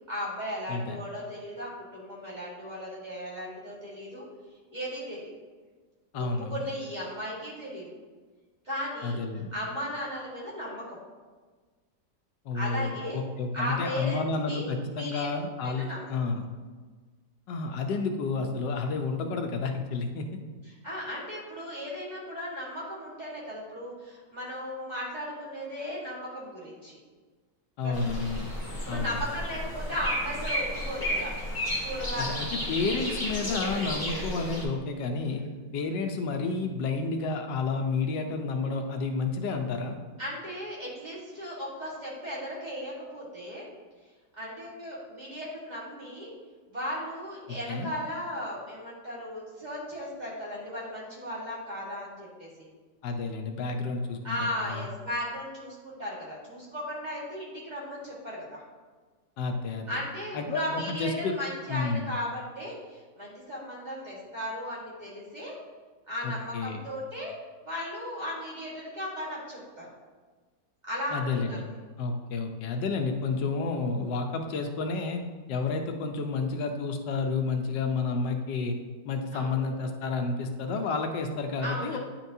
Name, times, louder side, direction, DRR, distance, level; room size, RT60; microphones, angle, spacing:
voice 1, 0.1-4.2 4.7-5.3 6.1-7.9 8.6-9.2 9.5-10.8 12.5-13.2 13.5-15.3 15.6-16.1 20.8-27.0 27.8-28.1 28.8-31.3 31.8-32.5 35.3-35.5 40.2-43.7 44.4-46.3 46.7-52.7 54.2-58.6 59.9-65.5 66.1-67.3 67.6-69.9 70.9-71.6 79.3-79.5 81.6-82.0, equal, 25° right, -7 dB, 1.6 m, -36 dB
voice 2, 6.1-6.6 9.0-9.5 12.4-16.5 17.5-20.3 27.8-28.4 28.9-29.2 32.2-35.4 35.7-40.0 47.5-47.9 53.0-54.9 59.4-59.9 60.3-61.3 61.7-62.1 66.2-66.8 71.1-71.6 72.0-75.2 75.5-78.8 79.0-82.0, left 4 dB, 85° left, 4 dB, 1.4 m, -30 dB
sound 1, 27.9-34.6, equal, 15° left, 1.2 m, -33 dB
9.8 x 4.4 x 2.7 m, 1.4 s
omnidirectional pair, 1.9 m